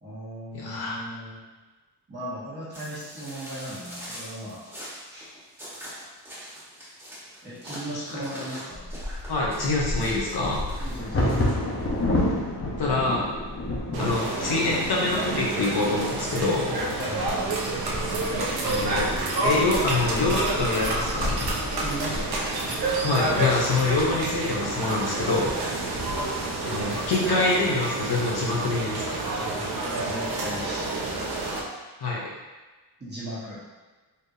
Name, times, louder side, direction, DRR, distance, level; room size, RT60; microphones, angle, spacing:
voice 1, 0.0-1.4 2.1-4.6 5.1-5.3 7.4-8.9 10.8-11.4 17.0-17.5 21.8-22.5 29.6-31.0 33.0-33.5, right 1 dB, 25° right, -8 dB, 1.2 m, -36 dB
voice 2, 0.5-1.0 7.9-8.0 9.3-10.7 12.8-13.4 14.0-16.8 18.6-19.1 19.4-21.5 23.0-25.5 26.6-29.2 32.0-32.2, left 2 dB, 60° left, -3 dB, 0.9 m, -25 dB
sound 1, 2.7-12.0, equal, 5° right, 1.4 m, -43 dB
Bird vocalization bird call bird song / Wind / Thunder, 8.7-24.6 25.2-25.3 25.7-26.1 26.5-27.0, left 1 dB, 30° left, 0.8 m, -31 dB
sound 2, 13.9-31.6, right 2 dB, 60° right, 0.8 m, -29 dB
4.3 x 3.5 x 2.7 m, 1.3 s
wide cardioid pair, 160°, 42 cm